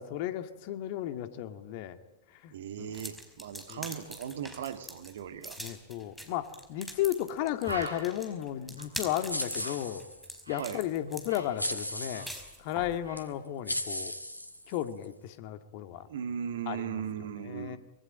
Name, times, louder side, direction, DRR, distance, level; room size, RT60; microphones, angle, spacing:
voice 1, 0.0-2.0 2.4-2.5 2.8-2.9 3.7-3.8 5.6-10.0 10.5-12.3 12.6-14.1 14.7-16.0 16.7-16.9 17.5-17.8, left 12 dB, 45° left, 9 dB, 2.1 m, -34 dB
voice 2, 2.5-5.6 10.6-10.8 16.1-17.8, right 8 dB, 60° right, 10 dB, 2.0 m, -38 dB
sound 1, 2.9-13.0, right 1 dB, ahead, 4.9 m, -44 dB
Bird, 6.8-6.9 7.2-7.3 7.6-10.8 11.1-12.8 13.0-13.3, right 1 dB, 85° right, 4.3 m, -44 dB
sound 2, 9.3-10.4 11.6-12.5 13.2-13.3 13.7-15.1, left 1 dB, 85° left, 2.0 m, -36 dB
25.5 x 23.5 x 8.9 m, 0.93 s
figure-of-eight pair, 90°, 0 cm